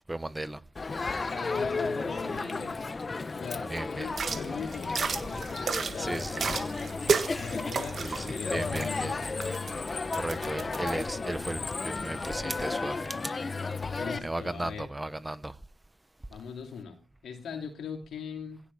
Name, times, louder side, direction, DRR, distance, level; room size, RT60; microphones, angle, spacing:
voice 1, 0.1-0.6 3.6-4.1 6.0-6.5 8.0-9.1 10.1-13.3 14.2-15.6, right 1 dB, 20° right, 1.1 m, -35 dB
Crowd, 0.7-14.2, left 3 dB, 45° left, 1.0 m, -33 dB
voice 2, 1.3-2.9 3.3-6.6 7.4-9.2 13.9-14.9 16.3-18.6, left 6 dB, 80° left, 2.8 m, -40 dB
sound 1, 4.1-11.0, right 5 dB, 65° right, 1.5 m, -34 dB
16.5 x 8.3 x 3.5 m
supercardioid pair, 45°, 0 cm